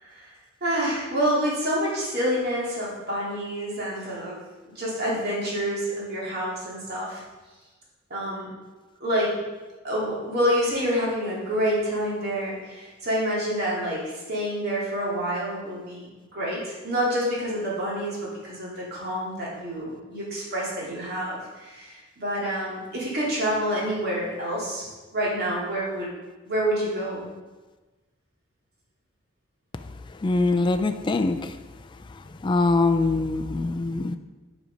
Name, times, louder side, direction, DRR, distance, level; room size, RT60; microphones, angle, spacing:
voice 1, 0.6-4.4 4.8-7.2 8.1-8.5 9.0-9.4 9.8-16.1 16.3-26.1 26.5-27.3, equal, 50° right, -5 dB, 2.7 m, -28 dB
voice 2, 30.2-31.4 32.4-34.2, left 3 dB, 20° left, 7 dB, 0.3 m, -23 dB
7.7 x 5.3 x 5.1 m, 1.2 s
head